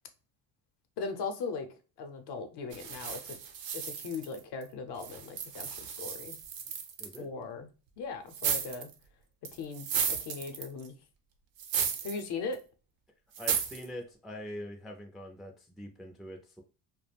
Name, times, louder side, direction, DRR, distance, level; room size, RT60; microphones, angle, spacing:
voice 1, 1.0-1.7 2.0-3.4 3.7-6.4 7.2-7.7 8.0-8.9 9.5-10.9 12.0-12.6, left 4 dB, 60° left, 7 dB, 0.7 m, -39 dB
sound 1, 2.7-4.6 5.0-7.2 8.3-8.9 9.5-10.9 11.6-12.2 12.5-12.6 13.4-13.9, right 7 dB, 80° right, 0.7 m, -34 dB
voice 2, 13.4-16.6, left 1 dB, ahead, 1 dB, 0.3 m, -43 dB
2.3 x 2.1 x 3.2 m, 0.34 s
cardioid pair, 100°, 45 cm